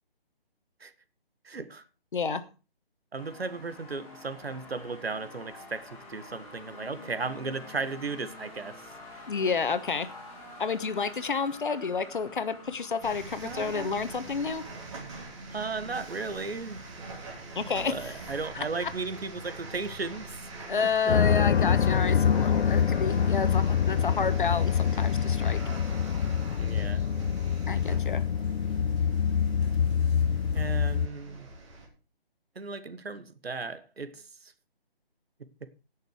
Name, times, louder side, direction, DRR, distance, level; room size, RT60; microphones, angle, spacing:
voice 1, 1.4-1.8 2.3-2.4 3.1-9.3 13.4-14.0 15.5-16.8 17.8-20.7 26.6-27.0 30.5-31.5 32.5-34.5 35.6-35.7, right 4 dB, 80° right, 1.7 m, -36 dB
voice 2, 2.1-2.4 9.3-10.1 10.6-14.6 17.5-18.1 18.5-18.9 20.7-25.6 27.7-28.2, left 5 dB, 55° left, 1.3 m, -30 dB
sound 1, 3.2-18.0, left 2 dB, 10° left, 2.6 m, -49 dB
sound 2, 13.0-31.9, right 2 dB, 30° right, 3.4 m, -43 dB
sound 3, 21.1-31.1, left 7 dB, 85° left, 0.6 m, -25 dB
17.0 x 6.6 x 4.9 m
hypercardioid pair, 165°, 30 cm